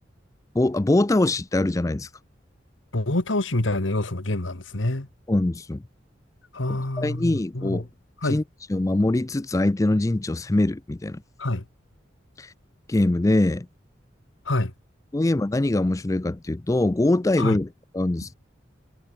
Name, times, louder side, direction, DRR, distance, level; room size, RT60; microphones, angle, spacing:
voice 1, 0.5-2.1 5.3-5.8 7.0-7.9 8.2-8.4 8.7-11.2 12.4-12.5 12.9-13.7 15.1-17.7 17.9-18.3, left 2 dB, 15° left, 0.4 m, -23 dB
voice 2, 2.9-5.1 6.5-7.9 8.2-8.4 11.4-11.7 14.5-14.7 17.4-17.6, left 2 dB, 90° left, 2.0 m, -26 dB
head